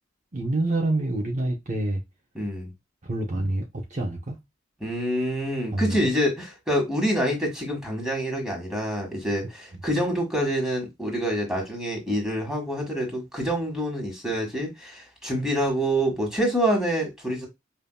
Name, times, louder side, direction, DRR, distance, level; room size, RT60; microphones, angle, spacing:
voice 1, 0.3-2.0 3.0-4.4 5.7-6.0, right 2 dB, 40° right, 0.7 m, -27 dB
voice 2, 2.3-2.7 4.8-17.5, equal, 5° right, 1.6 m, -26 dB
5.2 x 2.8 x 2.3 m
head